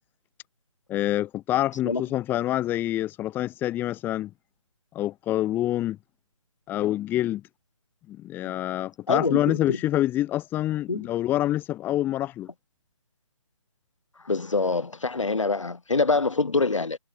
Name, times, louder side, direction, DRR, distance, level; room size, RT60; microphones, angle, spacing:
voice 1, 0.9-4.3 4.9-6.0 6.7-7.4 8.1-12.5, left 14 dB, 10° left, 2.8 m, -26 dB
voice 2, 9.1-9.8 10.9-11.1 14.3-17.0, left 3 dB, 65° left, 5.9 m, -25 dB
figure-of-eight pair, 145°, 17 cm